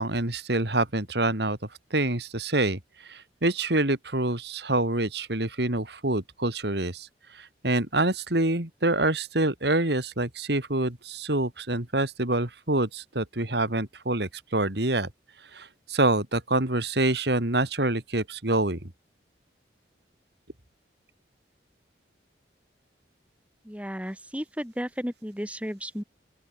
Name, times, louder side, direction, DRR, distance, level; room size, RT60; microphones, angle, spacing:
voice 1, 0.0-1.6 1.9-15.1 15.5-18.8, right 2 dB, 65° right, 2.8 m, -26 dB
voice 2, 23.6-26.0, equal, 5° right, 6.2 m, -34 dB
open air
head